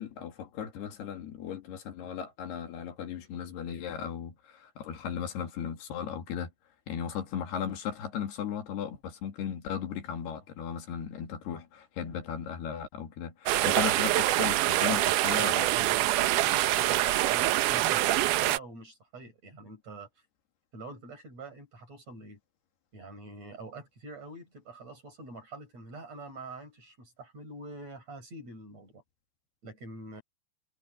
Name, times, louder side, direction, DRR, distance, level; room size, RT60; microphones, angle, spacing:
voice 1, 0.0-6.5 6.9-15.9, left 8 dB, 80° left, 4.4 m, -36 dB
sound 1, 13.5-18.6, right 15 dB, 90° right, 1.8 m, -25 dB
voice 2, 15.4-20.1 20.7-22.4 22.9-29.0 29.6-30.2, right 2 dB, 40° right, 8.6 m, -45 dB
omnidirectional pair, 4.6 m